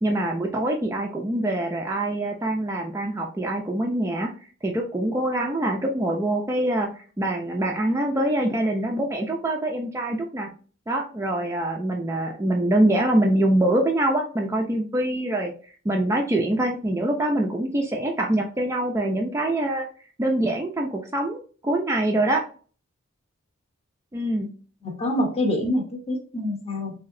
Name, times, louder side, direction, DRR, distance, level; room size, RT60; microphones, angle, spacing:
voice 1, 0.0-4.3 4.6-6.9 7.2-10.5 10.9-15.5 15.8-19.9 20.2-22.4 24.1-24.5, right 1 dB, 15° right, 1 dB, 0.3 m, -24 dB
voice 2, 24.8-26.9, left 1 dB, 30° left, 2 dB, 0.7 m, -26 dB
3.0 x 2.7 x 2.4 m, 0.41 s
head